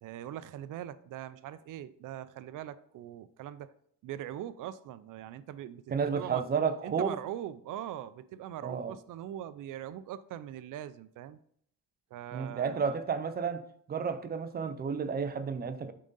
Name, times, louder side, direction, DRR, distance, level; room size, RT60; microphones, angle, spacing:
voice 1, 0.0-3.7 4.0-6.4 6.8-11.4 12.1-13.0, right 11 dB, 85° right, 0.5 m, -42 dB
voice 2, 5.9-7.2 8.6-8.9 12.3-13.6 13.9-15.9, right 6 dB, 30° right, 0.5 m, -31 dB
9.0 x 3.8 x 3.8 m
cardioid pair, 165°, 31 cm